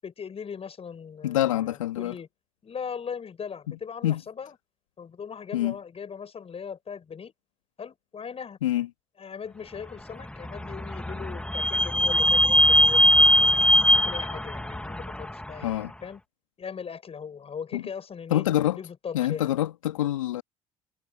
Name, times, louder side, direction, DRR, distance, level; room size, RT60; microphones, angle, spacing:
voice 1, 0.0-2.3 2.6-4.6 5.0-7.3 7.8-8.6 9.2-13.6 14.0-16.2 16.6-18.4 18.7-19.6, left 6 dB, 35° left, 7.5 m, -39 dB
voice 2, 1.2-2.2 3.7-3.8 4.0-4.2 5.5-5.7 8.6-8.9 15.6-15.9 17.7-17.8 18.3-18.8 19.1-20.4, left 13 dB, 85° left, 2.3 m, -26 dB
Vehicle / Squeak, 10.1-15.7, equal, 5° left, 2.0 m, -21 dB
hypercardioid pair, 60°, 16 cm